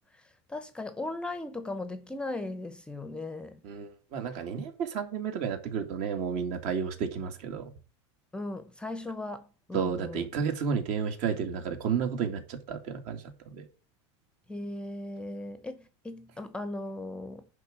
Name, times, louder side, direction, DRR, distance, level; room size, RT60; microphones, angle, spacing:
voice 1, 0.1-3.6 8.3-10.3 14.5-17.5, left 2 dB, 5° left, 0.8 m, -38 dB
voice 2, 3.6-7.7 9.7-13.7, right 6 dB, 50° right, 2.3 m, -32 dB
10.5 x 3.8 x 7.5 m
supercardioid pair, 135°, 15 cm